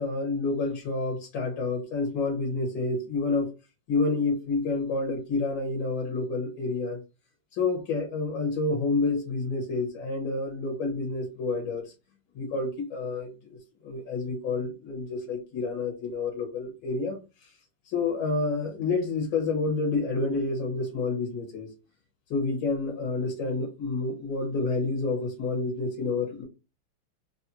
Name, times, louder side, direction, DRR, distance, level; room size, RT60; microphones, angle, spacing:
voice 1, 0.0-3.5 3.9-7.0 7.5-11.8 12.4-17.2 17.9-21.7 22.3-26.4, left 3 dB, 85° left, 0 dB, 2.1 m, -29 dB
4.2 x 3.3 x 2.7 m, 0.29 s
omnidirectional pair, 2.1 m